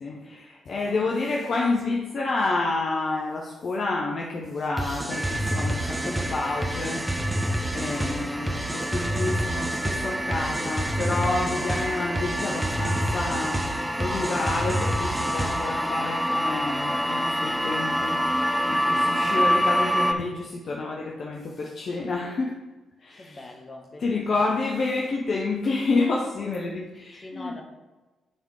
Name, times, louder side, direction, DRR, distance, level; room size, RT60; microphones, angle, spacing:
voice 1, 0.0-7.1 7.7-22.6 23.0-23.4 24.0-27.5, left 3 dB, 55° left, -2 dB, 0.7 m, -29 dB
voice 2, 0.7-1.1 7.9-8.1 23.2-24.5 27.2-27.6, left 2 dB, 40° left, 2 dB, 1.2 m, -44 dB
sound 1, 4.8-15.8, right 1 dB, 20° right, 1.1 m, -29 dB
sound 2, 5.1-20.1, equal, ahead, 0.5 m, -28 dB
9.0 x 3.7 x 3.5 m, 1.2 s
hypercardioid pair, 40°, 0 cm